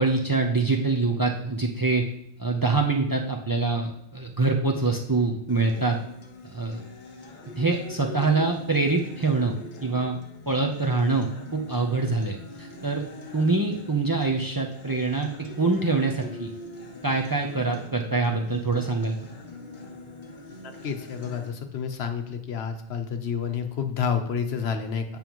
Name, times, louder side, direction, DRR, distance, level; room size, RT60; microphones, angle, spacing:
voice 1, 0.0-2.0 2.4-6.0 6.5-6.8 7.6-9.6 9.8-10.2 10.5-13.0 13.3-15.3 15.6-16.5 17.0-19.2, right 3 dB, 25° right, 2 dB, 0.5 m, -25 dB
Acoustic guitar, 5.5-21.5, left 3 dB, 50° left, 1.0 m, -43 dB
voice 2, 20.6-25.0, left 7 dB, 85° left, 6 dB, 1.1 m, -29 dB
8.7 x 5.4 x 3.0 m, 0.73 s
omnidirectional pair, 1.0 m